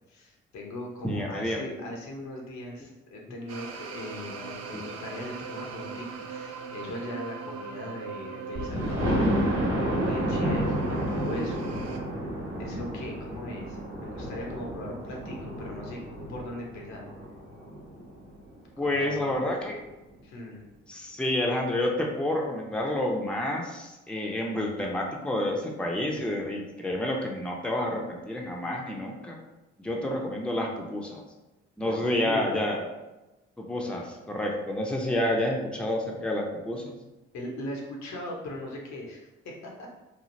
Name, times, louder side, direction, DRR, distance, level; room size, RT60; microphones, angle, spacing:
voice 1, 0.1-9.3 10.0-11.7 12.6-16.0 16.3-17.0 18.8-19.5 20.2-20.6 31.8-32.6 37.3-39.9, left 1 dB, 70° left, -1 dB, 0.8 m, -39 dB
voice 2, 1.0-1.7 4.7-4.8 18.8-19.8 20.9-29.4 29.8-31.2 31.8-32.8 33.6-36.9, left 1 dB, 5° left, 0 dB, 0.6 m, -29 dB
sound 1, 3.5-12.0, right 6 dB, 60° right, 0.5 m, -39 dB
Thunder, 8.5-18.3 18.8-18.9 19.3-19.4 19.7-19.8, equal, 45° right, 1.1 m, -30 dB
3.1 x 2.4 x 2.6 m, 1.0 s
hypercardioid pair, 50°, 29 cm